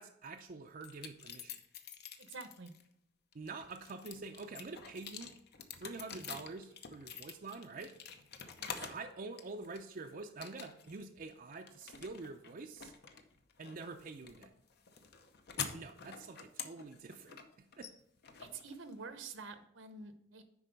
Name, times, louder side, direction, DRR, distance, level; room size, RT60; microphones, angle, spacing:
voice 1, 0.0-1.6 3.3-5.3 5.8-7.9 8.8-12.9 13.6-14.5 15.7-17.9, right 3 dB, 45° right, 5 dB, 0.5 m, -46 dB
sound 1, 0.8-2.8 3.3-9.1 9.4-10.0 10.4-11.0 11.3-19.2, left 6 dB, 60° left, 0.8 m, -47 dB
voice 2, 2.2-2.7 8.6-8.9 18.4-20.4, right 4 dB, 80° right, 9 dB, 1.0 m, -48 dB
10.0 x 4.2 x 5.2 m, 0.77 s
head